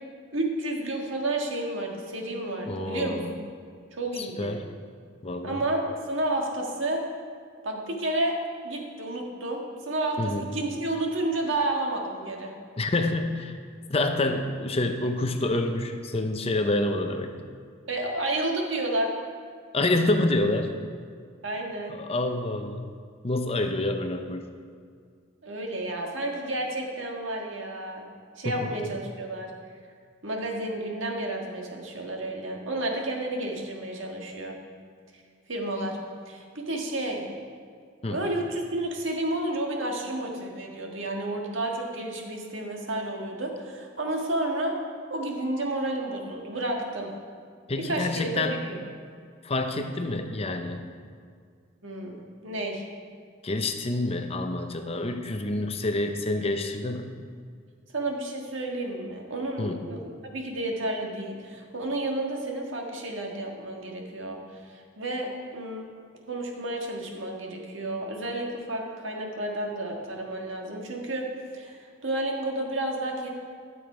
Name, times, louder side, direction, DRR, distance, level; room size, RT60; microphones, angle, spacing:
voice 1, 0.3-3.2 4.0-4.6 5.4-7.0 7.6-8.3 8.6-12.5 17.9-19.1 21.4-22.0 25.4-28.0 28.4-29.5 30.2-34.5 35.5-36.0 36.3-37.2 38.1-44.8 45.1-47.1 47.8-48.8 51.8-52.8 57.9-60.0 60.3-64.4 64.7-65.8 66.3-71.3 71.5-73.3, right 1 dB, 75° right, 1 dB, 1.6 m, -31 dB
voice 2, 2.7-3.4 4.2-4.6 5.2-5.6 10.2-10.4 12.8-13.6 13.9-17.4 19.7-20.7 21.9-22.9 23.2-24.5 28.4-28.7 38.0-38.2 47.7-48.6 49.4-50.8 53.4-57.1 59.6-59.8, left 2 dB, 30° left, 6 dB, 0.7 m, -27 dB
12.5 x 7.0 x 4.9 m, 2.1 s
head